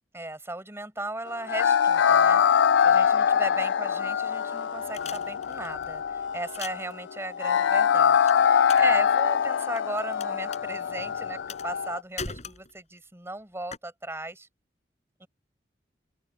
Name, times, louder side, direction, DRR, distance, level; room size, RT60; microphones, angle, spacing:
voice 1, 0.1-14.5 15.2-15.3, right 2 dB, 15° right, 5.2 m, -37 dB
sound 1, 1.5-12.0, left 7 dB, 90° left, 0.4 m, -23 dB
Tearing pieces of wood, 4.9-5.8 6.4-6.9 8.3-8.9 9.2-10.2 10.5-10.6 11.5-11.9 12.2-13.0 13.7-13.8, left 5 dB, 40° left, 7.7 m, -38 dB
open air
head